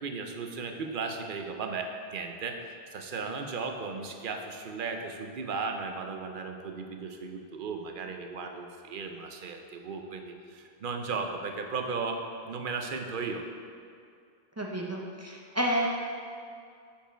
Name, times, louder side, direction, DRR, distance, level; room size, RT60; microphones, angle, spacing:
voice 1, 0.0-2.6 2.9-13.4, right 4 dB, 55° right, 5 dB, 0.8 m, -36 dB
voice 2, 14.6-15.9, right 1 dB, 20° right, -2 dB, 0.6 m, -30 dB
6.7 x 5.2 x 5.0 m, 2.4 s
omnidirectional pair, 1.1 m